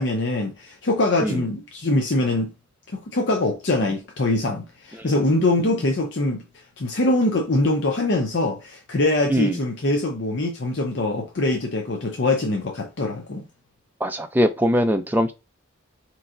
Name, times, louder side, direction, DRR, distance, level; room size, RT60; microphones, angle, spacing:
voice 1, 0.0-2.5 2.9-6.4 6.8-13.4, left 2 dB, 60° left, 0.6 m, -23 dB
voice 2, 14.0-15.3, equal, 10° right, 0.4 m, -22 dB
4.4 x 3.0 x 2.5 m
head